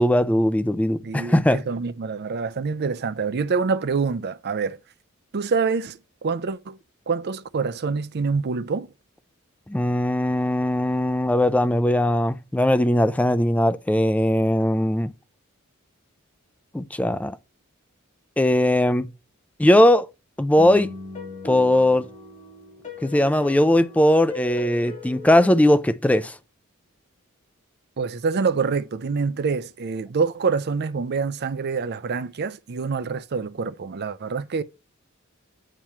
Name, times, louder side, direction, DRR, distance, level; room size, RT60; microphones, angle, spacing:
voice 1, 0.0-1.6 9.7-15.1 16.7-17.4 18.4-19.1 19.6-20.1 20.4-20.9 21.4-22.1 23.0-26.4, left 1 dB, 5° left, 0.4 m, -19 dB
voice 2, 1.0-4.8 5.3-6.8 7.1-8.9 28.0-34.6, right 5 dB, 50° right, 0.5 m, -26 dB
sound 1, 20.6-25.9, left 2 dB, 35° left, 1.9 m, -38 dB
8.8 x 3.1 x 5.5 m
head